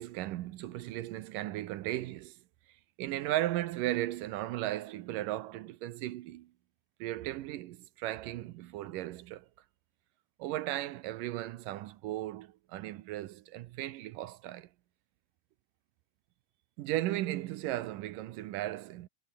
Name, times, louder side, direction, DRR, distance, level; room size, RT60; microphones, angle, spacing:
voice 1, 0.0-2.4 3.0-6.5 7.0-9.5 10.4-14.7 16.8-19.1, right 15 dB, 75° right, 2.3 m, -36 dB
omnidirectional pair, 4.3 m